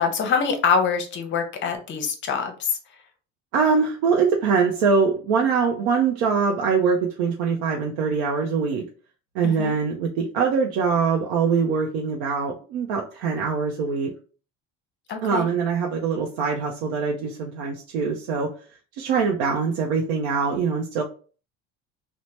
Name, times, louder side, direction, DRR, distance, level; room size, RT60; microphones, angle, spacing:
voice 1, 0.0-2.8 9.4-9.7 15.1-15.5, left 6 dB, 35° left, 5 dB, 0.6 m, -24 dB
voice 2, 3.5-8.8 9.3-14.1 15.2-18.5 19.0-21.0, right 5 dB, 85° right, 0 dB, 0.6 m, -23 dB
2.8 x 2.1 x 3.1 m, 0.38 s
cardioid pair, 130°, 32 cm